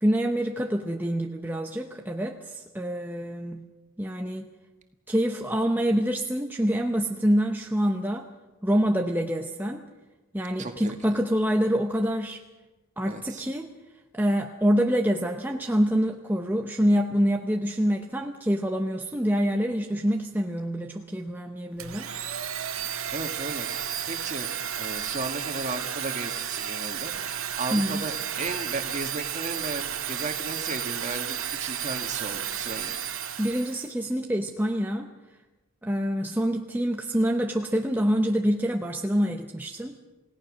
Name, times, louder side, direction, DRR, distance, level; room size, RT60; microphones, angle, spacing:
voice 1, 0.0-3.6 4.0-4.5 5.1-8.3 8.6-9.9 10.3-12.4 13.0-13.7 14.1-22.2 27.7-28.0 33.4-35.1 35.8-40.0, equal, 10° right, 3 dB, 0.8 m, -26 dB
voice 2, 10.6-11.2 13.0-13.4 23.1-23.7 24.1-24.5 24.8-27.1 27.6-33.0, right 3 dB, 35° right, 5 dB, 2.0 m, -35 dB
Domestic sounds home sounds, 21.8-33.9, right 9 dB, 70° right, 1.5 m, -32 dB
28.5 x 17.5 x 6.4 m, 1.1 s
head